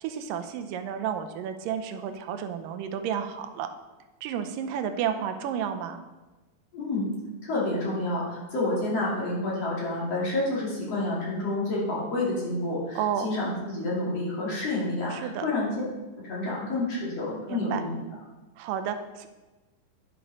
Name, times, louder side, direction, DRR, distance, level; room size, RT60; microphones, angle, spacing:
voice 1, 0.0-3.7 4.2-6.0 13.0-13.3 15.1-15.5 17.5-17.8 18.6-19.3, right 8 dB, 85° right, 8 dB, 2.4 m, -31 dB
voice 2, 6.7-7.2 7.4-15.7 16.2-18.0, left 2 dB, 50° left, -6 dB, 3.7 m, -29 dB
10.5 x 6.1 x 5.3 m, 1.2 s
omnidirectional pair, 3.9 m